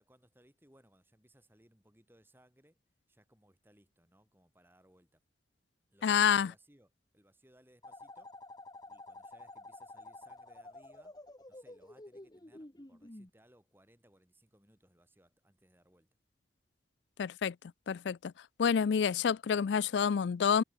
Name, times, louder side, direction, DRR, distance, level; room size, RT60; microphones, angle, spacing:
voice 1, 0.0-2.8 3.1-5.2 5.9-8.3 8.9-11.2 11.5-16.1, right 1 dB, 10° right, 6.0 m, -65 dB
voice 2, 6.0-6.5 17.2-17.5 17.9-18.3 18.6-20.6, left 7 dB, 70° left, 0.4 m, -28 dB
sound 1, 7.8-13.3, left 2 dB, 20° left, 1.4 m, -50 dB
head